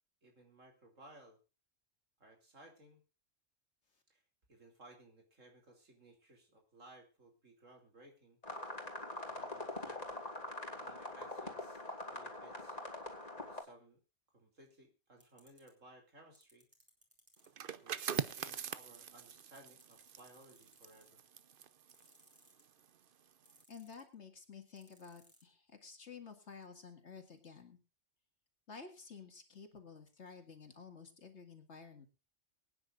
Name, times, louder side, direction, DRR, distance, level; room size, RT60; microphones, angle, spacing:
voice 1, 0.2-1.4 2.2-3.0 4.1-4.2 4.5-8.4 9.3-10.2 10.6-11.8 12.1-12.8 13.3-14.0 14.3-16.7 17.7-21.2, right 1 dB, 85° right, 2 dB, 3.6 m, -60 dB
sound 1, 8.4-13.6, left 1 dB, 30° left, 2.7 m, -44 dB
sound 2, 15.2-15.7 16.3-17.5 18.1-18.3 18.7-18.8 19.0-21.3 21.9-22.8 23.4-24.1 24.8-25.4, equal, 10° right, 3.8 m, -65 dB
sound 3, 17.5-23.0 23.3-23.6, right 8 dB, 50° right, 0.8 m, -43 dB
voice 2, 23.7-27.8 28.7-32.1, left 5 dB, 65° left, 5 dB, 2.3 m, -52 dB
23.5 x 9.7 x 2.5 m, 0.31 s
omnidirectional pair, 1.3 m